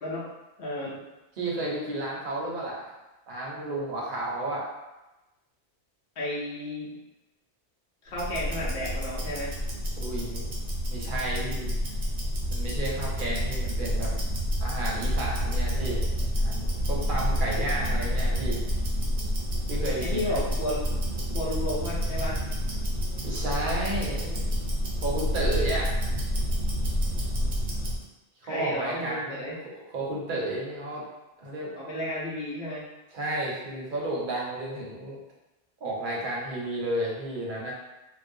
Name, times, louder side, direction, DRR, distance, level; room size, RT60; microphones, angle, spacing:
voice 1, 0.6-0.9 6.2-7.0 8.0-9.5 20.0-20.8 21.3-22.3 28.5-29.5 31.7-32.8, left 1 dB, 65° left, -7 dB, 0.9 m, -32 dB
voice 2, 1.4-2.9 3.3-4.7 10.0-10.5 10.9-11.7 12.5-14.1 14.6-16.1 16.4-18.6 19.7-20.4 23.2-24.4 25.0-26.1 28.5-31.0 31.4-31.7 33.1-35.2 35.8-37.7, right 1 dB, 55° right, -4 dB, 0.8 m, -32 dB
Tick-tock, 8.1-28.0, equal, 80° right, 1.0 m, -29 dB
2.5 x 2.1 x 2.5 m, 1.0 s
omnidirectional pair, 1.1 m